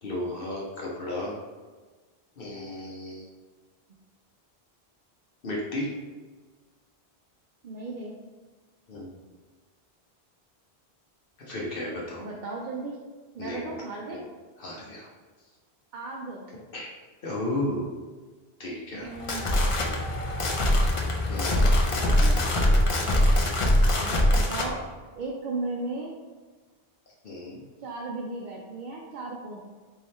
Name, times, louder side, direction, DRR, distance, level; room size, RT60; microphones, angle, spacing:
voice 1, 0.0-1.4 2.4-3.3 5.4-5.9 8.9-9.2 11.4-12.3 13.4-13.6 14.1-14.2 14.6-15.1 16.7-16.9 17.2-17.9 18.6-19.1 21.3-21.8 27.2-27.6, left 1 dB, 65° left, -4 dB, 0.9 m, -33 dB
voice 2, 7.6-8.1 12.2-13.0 13.4-14.2 15.9-16.4 19.0-19.7 21.9-22.4 23.9-24.8 25.2-26.1 27.8-29.6, right 3 dB, 60° right, -2 dB, 0.6 m, -35 dB
sound 1, 19.0-24.7, left 1 dB, 45° left, 0.4 m, -23 dB
3.4 x 2.7 x 4.2 m, 1.4 s
omnidirectional pair, 1.1 m